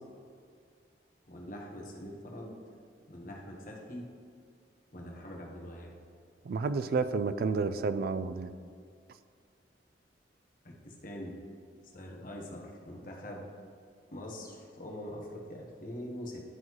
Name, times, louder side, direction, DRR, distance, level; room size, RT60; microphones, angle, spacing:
voice 1, 1.3-2.6 3.1-4.0 4.9-5.9 10.6-11.4 11.8-13.4 14.1-16.4, left 1 dB, 50° left, -1 dB, 1.2 m, -43 dB
voice 2, 6.5-8.5, right 4 dB, 55° right, 12 dB, 0.3 m, -30 dB
11.0 x 3.8 x 3.1 m, 2.2 s
head